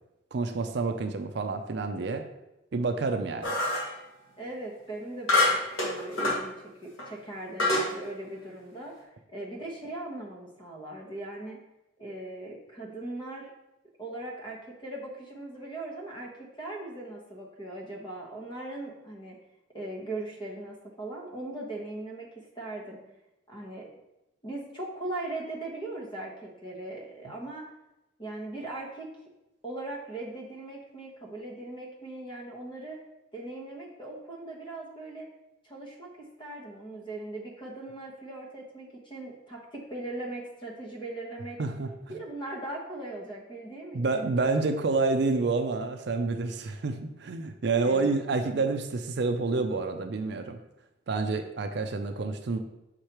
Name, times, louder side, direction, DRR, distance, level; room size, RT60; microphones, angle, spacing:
voice 1, 0.3-2.2 2.7-3.5 41.6-42.2 43.9-50.6 51.1-52.6, right 3 dB, 60° right, 7 dB, 0.5 m, -28 dB
sound 1, 3.4-4.0 5.3-6.4 7.0-7.1 7.6-7.9, left 2 dB, 90° left, 1.4 m, -25 dB
voice 2, 4.4-6.5 6.8-8.9 9.3-11.6 12.0-13.5 14.0-19.4 19.7-23.0 23.5-23.9 24.4-27.6 28.2-29.1 29.6-33.0 33.3-35.3 35.6-41.6 42.1-44.3 47.8-48.2, right 2 dB, 25° left, -2 dB, 1.2 m, -39 dB
6.4 x 4.9 x 3.0 m, 0.92 s
head